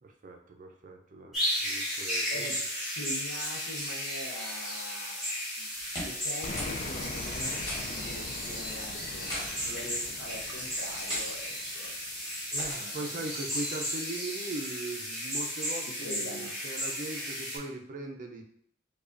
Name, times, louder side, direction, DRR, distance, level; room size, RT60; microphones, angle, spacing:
voice 1, 0.0-2.5 12.5-18.4, right 2 dB, 45° right, 3 dB, 0.5 m, -40 dB
sound 1, 1.3-17.6, equal, ahead, 1.3 m, -34 dB
voice 2, 2.3-5.7 6.0-7.6 7.8-11.9 12.5-13.3 15.9-16.6, left 1 dB, 80° left, 1 dB, 0.8 m, -43 dB
sound 2, 5.8-6.3 6.6-6.8 7.1-7.2 7.7-8.1 9.0-9.5 10.2-10.5 11.1-11.3 12.6-12.9, equal, 20° left, 1.2 m, -39 dB
sound 3, 6.4-12.3, left 3 dB, 40° left, 0.3 m, -43 dB
4.9 x 2.3 x 2.5 m, 0.68 s
head